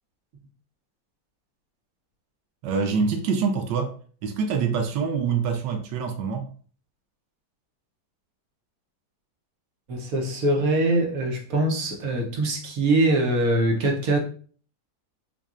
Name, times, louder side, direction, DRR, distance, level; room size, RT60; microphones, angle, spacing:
voice 1, 2.6-3.9 4.2-6.5, right 5 dB, 90° right, 1.3 m, -25 dB
voice 2, 9.9-14.2, right 2 dB, 60° right, 1.1 m, -23 dB
5.3 x 2.3 x 2.4 m
omnidirectional pair, 1.8 m